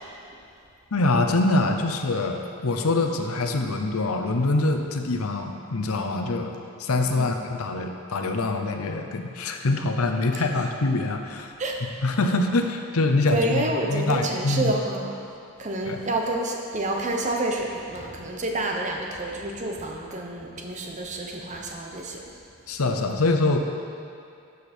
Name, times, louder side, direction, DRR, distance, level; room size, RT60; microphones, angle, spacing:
voice 1, 0.9-6.5 6.8-11.5 12.0-14.7 15.9-16.0 22.7-23.6, left 2 dB, 80° left, 4 dB, 0.8 m, -24 dB
voice 2, 13.3-15.1 15.6-22.2, right 1 dB, 35° right, 1 dB, 0.9 m, -28 dB
12.0 x 6.7 x 4.4 m, 2.6 s
head